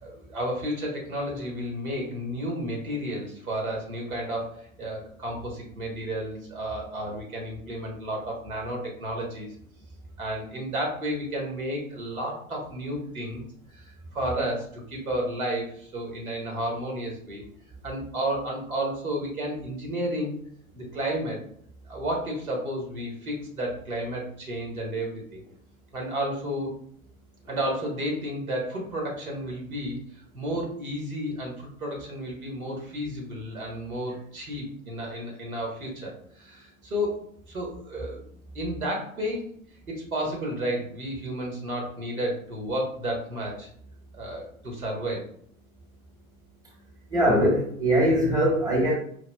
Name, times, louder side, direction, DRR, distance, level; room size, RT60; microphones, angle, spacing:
voice 1, 0.0-9.5 10.2-13.4 13.7-17.4 17.8-20.4 20.7-21.4 21.9-25.4 25.9-26.7 27.4-30.0 30.3-38.2 38.5-39.5 39.9-43.7 44.1-45.3, equal, 85° right, -1 dB, 1.2 m, -32 dB
voice 2, 47.1-48.9, equal, 10° right, -2 dB, 1.0 m, -21 dB
4.7 x 2.4 x 2.2 m, 0.64 s
figure-of-eight pair, 95°, 42 cm